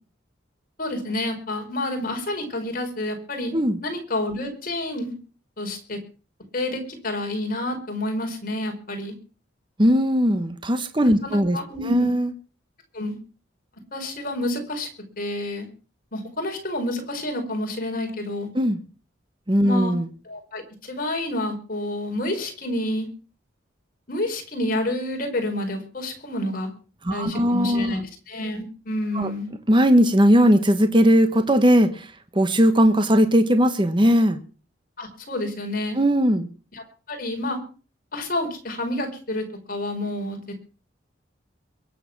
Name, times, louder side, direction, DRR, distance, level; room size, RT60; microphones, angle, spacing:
voice 1, 0.8-3.5 3.8-5.1 5.6-6.0 6.5-9.1 11.2-12.1 12.9-13.2 13.9-14.9 15.2-15.7 16.1-18.5 19.6-20.0 20.2-23.1 24.1-26.7 27.1-29.5 35.0-36.0 36.7-37.6 38.1-40.4, left 1 dB, 45° left, 3 dB, 4.8 m, -29 dB
voice 2, 9.8-11.6 11.8-12.3 18.5-18.8 19.5-20.1 27.0-28.0 29.1-29.3 29.7-32.1 32.3-34.4 35.9-36.5, equal, 25° right, 8 dB, 1.2 m, -18 dB
23.0 x 8.0 x 6.0 m, 0.38 s
head